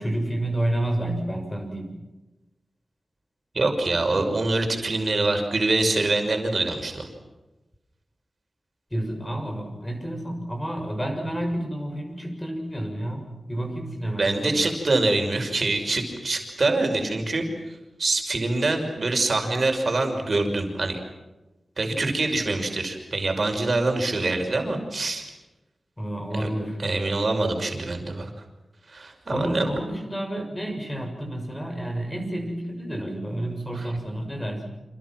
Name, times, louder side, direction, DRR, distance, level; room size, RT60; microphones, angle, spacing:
voice 1, 0.0-1.9 4.2-4.3 8.9-14.7 26.0-26.8 29.3-34.7, right 1 dB, 10° left, 3 dB, 7.0 m, -30 dB
voice 2, 3.5-7.1 14.2-17.5 18.0-21.0 21.8-25.2 26.3-26.5 26.8-28.3 28.9-29.7 33.7-33.9, right 2 dB, 45° right, 4 dB, 6.0 m, -25 dB
29.5 x 27.5 x 6.2 m, 1.1 s
wide cardioid pair, 135°, 0 cm